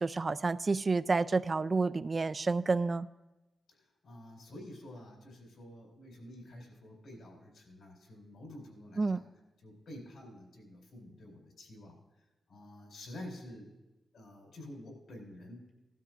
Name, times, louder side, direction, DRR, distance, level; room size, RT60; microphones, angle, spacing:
voice 1, 0.0-3.1 9.0-9.2, right 3 dB, 40° right, 12 dB, 0.3 m, -29 dB
voice 2, 3.7-9.3 9.6-12.0 12.5-13.7 14.1-15.7, left 1 dB, 80° left, -1 dB, 4.2 m, -49 dB
17.0 x 12.5 x 2.5 m, 1.0 s
cardioid pair, 70°, 0 cm